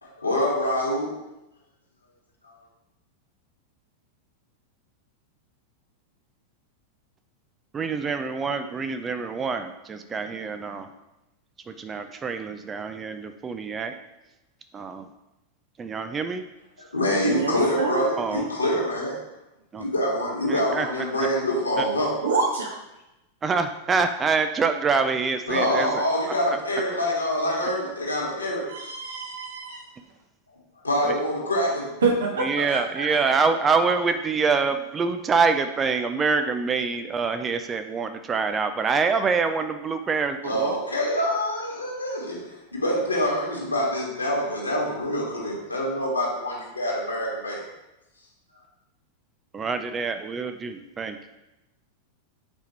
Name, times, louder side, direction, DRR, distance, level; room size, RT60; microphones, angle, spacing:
voice 1, 0.0-1.1 2.4-2.6 16.8-19.1 19.8-22.1 25.5-28.7 30.8-31.9 40.4-47.6, equal, 80° left, -4 dB, 2.1 m, -25 dB
voice 2, 7.7-10.9 11.7-13.9 14.7-15.1 15.8-16.5 18.2-18.5 19.7-19.9 20.5-20.9 21.8-21.9 23.4-26.0 26.5-26.6 31.0-31.1 32.4-40.7 49.5-51.2, right 5 dB, 20° right, 8 dB, 0.5 m, -25 dB
voice 3, 17.2-18.2 22.2-22.7 28.7-29.8 32.0-32.5 32.9-33.0, right 4 dB, 65° right, -2 dB, 1.8 m, -26 dB
8.3 x 5.0 x 3.2 m, 0.95 s
figure-of-eight pair, 90°, 0 cm